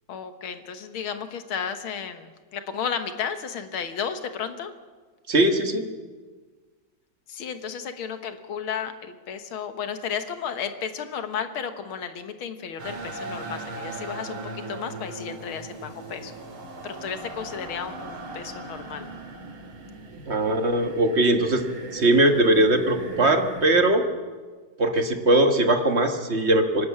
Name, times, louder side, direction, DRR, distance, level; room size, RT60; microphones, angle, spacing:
voice 1, 0.1-4.7 7.3-16.3 16.8-19.1, left 7 dB, 80° left, 8 dB, 2.0 m, -33 dB
voice 2, 5.3-5.8 20.3-21.6 21.9-24.0 24.8-26.9, right 1 dB, 35° right, 6 dB, 1.4 m, -20 dB
sound 1, 12.8-23.8, right 3 dB, 80° right, 3.1 m, -38 dB
24.5 x 12.0 x 8.7 m, 1.4 s
omnidirectional pair, 2.3 m